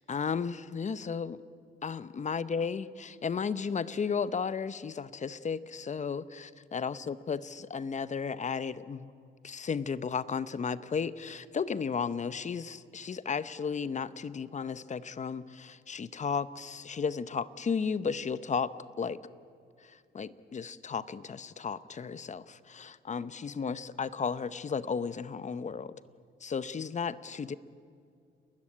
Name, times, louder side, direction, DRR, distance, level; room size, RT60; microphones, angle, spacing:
voice 1, 0.1-1.4 1.8-9.1 9.4-19.2 19.8-25.9 26.4-27.6, left 6 dB, 35° left, 15 dB, 0.9 m, -34 dB
30.0 x 14.0 x 10.0 m, 2.3 s
cardioid pair, 90°, 20 cm